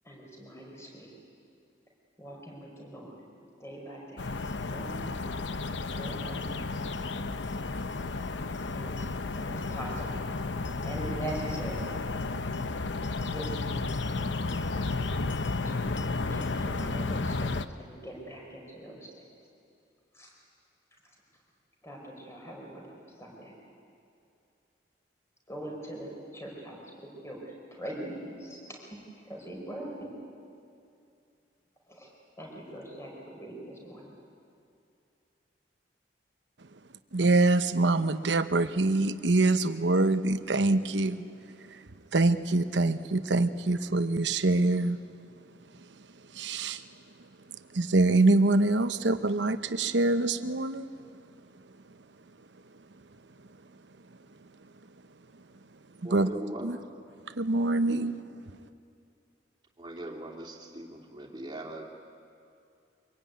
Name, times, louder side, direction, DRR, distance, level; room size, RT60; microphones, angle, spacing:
voice 1, 0.0-1.1 2.2-3.2 3.6-5.6 5.9-6.7 8.7-9.1 9.4-10.3 10.8-11.9 13.3-15.0 15.6-19.2 20.1-20.3 21.8-23.6 25.5-29.0 29.2-30.1 31.9-32.1 32.4-34.1, right 1 dB, 15° left, -1 dB, 4.9 m, -42 dB
sound 1, 4.2-17.6, left 3 dB, 85° left, 0.8 m, -32 dB
voice 2, 37.1-50.9 51.5-52.1 52.4-53.7 54.1-54.5 54.9-55.0 55.3-55.4 55.7-56.3 56.6-56.8 57.2-58.2, right 2 dB, 75° right, 11 dB, 0.9 m, -26 dB
voice 3, 56.0-56.8 57.9-58.1 59.8-61.9, right 1 dB, 25° right, 0 dB, 2.7 m, -40 dB
24.0 x 22.5 x 9.5 m, 2.5 s
head